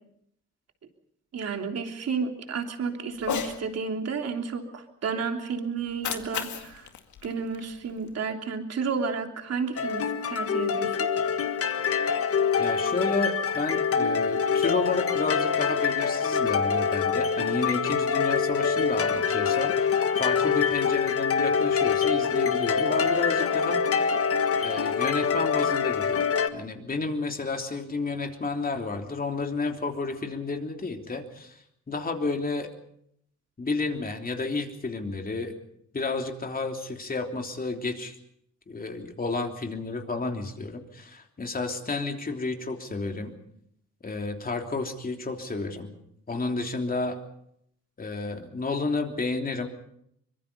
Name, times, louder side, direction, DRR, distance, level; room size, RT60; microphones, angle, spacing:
voice 1, 1.3-6.9 7.2-11.1, right 5 dB, 55° right, 4 dB, 3.2 m, -31 dB
Cat, 3.2-3.6 5.8-8.1, left 8 dB, 75° left, 2.1 m, -35 dB
sound 1, 9.8-26.5, left 6 dB, 50° left, 1.6 m, -25 dB
voice 2, 12.6-23.8 24.6-26.3 26.5-31.6 31.9-32.7 33.6-35.5 35.9-38.2 38.7-43.3 44.0-45.9 46.3-47.2 48.0-49.7, left 3 dB, 30° left, 4 dB, 3.2 m, -31 dB
24.5 x 22.0 x 5.4 m, 0.72 s
cardioid pair, 90°, 30 cm